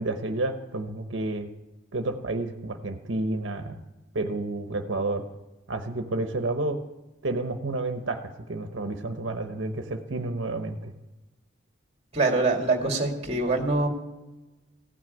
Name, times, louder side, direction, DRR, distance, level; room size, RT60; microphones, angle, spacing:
voice 1, 0.0-1.5 1.9-3.8 4.1-5.2 5.7-6.8 7.2-10.9, right 2 dB, 80° right, 6 dB, 1.0 m, -30 dB
voice 2, 12.1-13.9, right 3 dB, 30° right, 2 dB, 2.1 m, -24 dB
15.5 x 6.4 x 9.1 m, 1.1 s
head